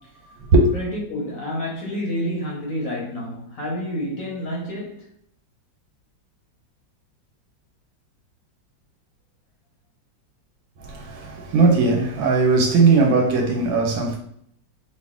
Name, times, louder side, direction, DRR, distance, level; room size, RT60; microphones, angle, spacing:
voice 1, 0.7-5.1, equal, 55° left, 1.1 m, -29 dB
voice 2, 10.8-14.2, right 3 dB, 85° right, 1.6 m, -18 dB
3.2 x 2.5 x 3.6 m
omnidirectional pair, 2.1 m